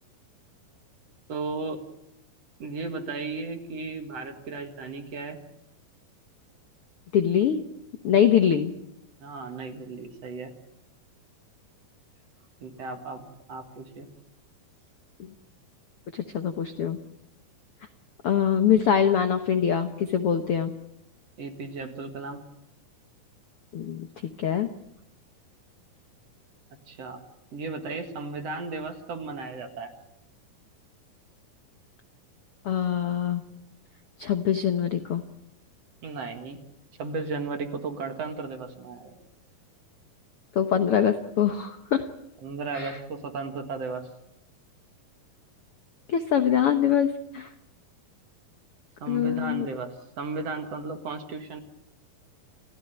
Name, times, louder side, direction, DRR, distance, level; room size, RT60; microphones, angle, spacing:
voice 1, 1.3-1.8 2.6-5.4 9.2-10.5 12.6-14.1 21.4-22.4 26.9-27.2 27.5-29.9 36.0-36.6 37.0-39.2 42.4-44.1 49.0-51.6, right 4 dB, 50° right, 6 dB, 2.5 m, -35 dB
voice 2, 7.1-7.6 8.0-8.7 16.1-17.0 18.2-20.7 23.7-24.1 24.4-24.7 32.6-33.4 34.2-35.2 40.5-42.0 42.7-43.0 46.1-47.5 49.1-49.7, left 8 dB, 70° left, 8 dB, 1.3 m, -23 dB
28.5 x 16.5 x 9.1 m, 0.81 s
omnidirectional pair, 4.2 m